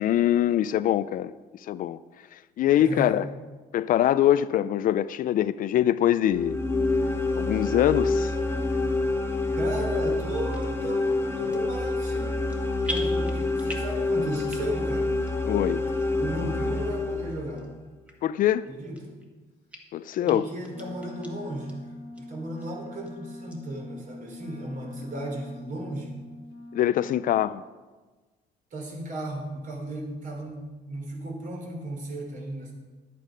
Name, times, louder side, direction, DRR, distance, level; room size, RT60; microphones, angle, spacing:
voice 1, 0.0-2.0 2.3-3.3 3.7-6.6 7.3-8.4 15.5-15.8 18.2-18.7 19.9-20.4 26.7-27.6, left 11 dB, 55° left, 15 dB, 0.4 m, -23 dB
voice 2, 2.7-3.3 9.6-11.1 11.4-12.5 12.9-15.1 16.2-17.7 18.7-19.2 20.2-26.1 28.7-32.7, right 1 dB, 50° right, 0 dB, 3.2 m, -35 dB
sound 1, 6.3-17.6, left 2 dB, 15° left, 1.1 m, -27 dB
sound 2, 10.5-10.7 11.3-11.8 12.1-12.6 12.8-14.0 14.4-14.9 15.3-15.4 16.0-16.1 16.8-16.9 17.6-17.7 18.1-18.2 18.6-19.3 19.7-19.8 20.3-20.4 20.6-21.3 21.7-21.8 22.1-22.2 22.6-23.1 23.5-23.6, equal, 10° right, 1.7 m, -39 dB
Wind instrument woodwind instrument, 20.7-27.5, left 1 dB, 85° left, 1.6 m, -43 dB
10.5 x 8.5 x 5.1 m, 1.3 s
cardioid pair, 110°, 17 cm